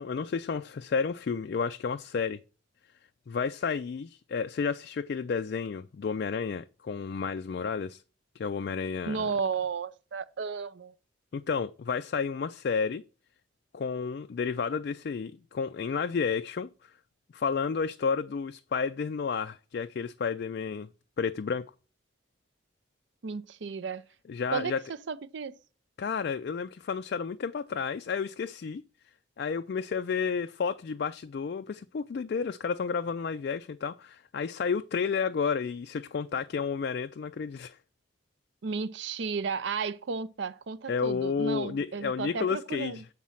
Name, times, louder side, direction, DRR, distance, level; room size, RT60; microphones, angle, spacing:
voice 1, 0.0-2.4 3.3-8.0 8.4-9.3 11.3-13.0 13.7-16.7 17.3-20.9 21.2-21.6 24.3-24.8 26.0-28.8 29.4-37.8 40.9-43.0, left 5 dB, 50° left, 0.3 m, -31 dB
voice 2, 9.1-10.9 23.2-24.0 24.5-25.6 38.6-43.0, right 5 dB, 60° right, 0.5 m, -33 dB
7.5 x 4.0 x 5.6 m
head